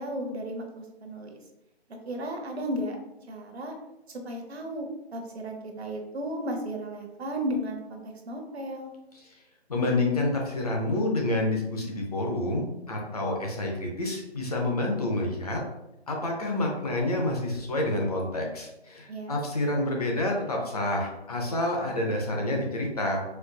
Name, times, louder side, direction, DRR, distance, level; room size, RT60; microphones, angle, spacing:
voice 1, 0.0-1.4 2.1-3.0 3.3-3.8 4.2-8.9 19.1-19.4, equal, 75° right, 3 dB, 0.8 m, -34 dB
voice 2, 9.7-15.6 16.1-23.2, left 2 dB, 35° left, 0 dB, 0.6 m, -28 dB
4.3 x 2.5 x 2.2 m, 0.90 s
hypercardioid pair, 165°, 32 cm